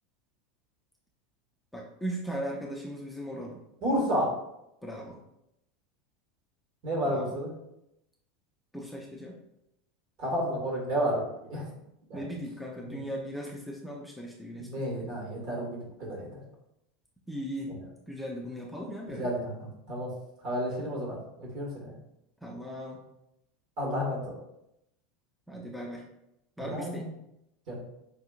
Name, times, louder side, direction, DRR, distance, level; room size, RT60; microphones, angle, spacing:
voice 1, 1.7-3.6 4.8-5.2 7.0-7.4 8.7-9.4 12.1-14.9 17.3-17.7 18.1-19.4 22.4-23.0 25.5-26.0 26.6-27.1, equal, ahead, -2 dB, 0.6 m, -38 dB
voice 2, 3.8-4.3 6.8-7.5 10.2-11.7 12.1-12.3 12.9-13.0 14.7-16.4 19.1-19.6 19.9-20.1 20.4-21.9 23.8-24.3 26.6-27.1 27.7-27.8, equal, 50° right, -2 dB, 1.5 m, -31 dB
5.3 x 2.7 x 2.4 m, 0.83 s
figure-of-eight pair, 80°, 0 cm